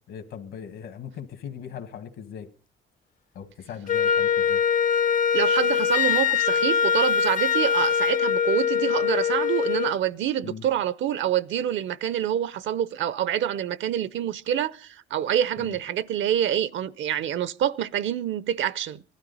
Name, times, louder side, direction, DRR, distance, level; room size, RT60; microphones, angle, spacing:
voice 1, 0.1-2.5 3.3-4.6 10.4-10.6 15.6-15.8, left 8 dB, 80° left, 1.6 m, -39 dB
Wind instrument woodwind instrument, 3.9-10.0, left 7 dB, 40° left, 0.6 m, -23 dB
voice 2, 5.3-19.0, right 10 dB, 75° right, 0.6 m, -26 dB
19.5 x 12.5 x 4.1 m
cardioid pair, 90°, 20 cm